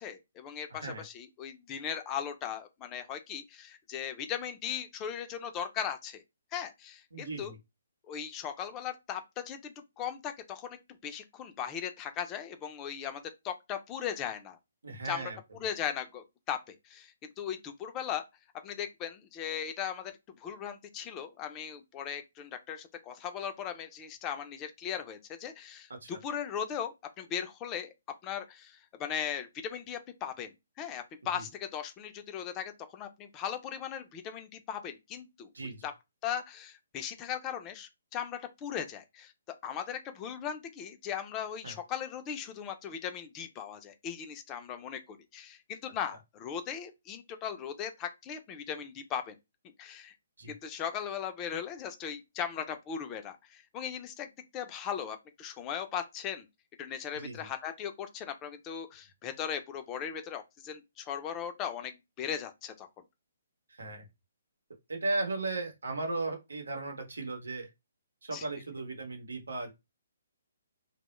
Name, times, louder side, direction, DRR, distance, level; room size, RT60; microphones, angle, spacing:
voice 1, 0.0-6.2 6.5-7.5 8.1-14.6 15.0-15.2 15.6-18.2 18.6-20.1 20.4-27.9 28.2-30.5 30.8-35.5 35.8-35.9 36.2-39.3 39.6-49.4 49.8-50.1 50.5-56.4 56.8-62.9 68.3-68.4, left 8 dB, 20° left, 0.4 m, -38 dB
voice 2, 0.7-1.0 7.1-7.6 14.8-15.4 25.9-26.2 31.3-31.4 35.5-35.9 41.6-41.8 50.4-50.5 57.1-57.5 63.7-64.1 64.9-67.7 68.2-69.7, right 2 dB, 90° right, 0.8 m, -36 dB
2.2 x 2.0 x 3.0 m
hypercardioid pair, 150°, 0 cm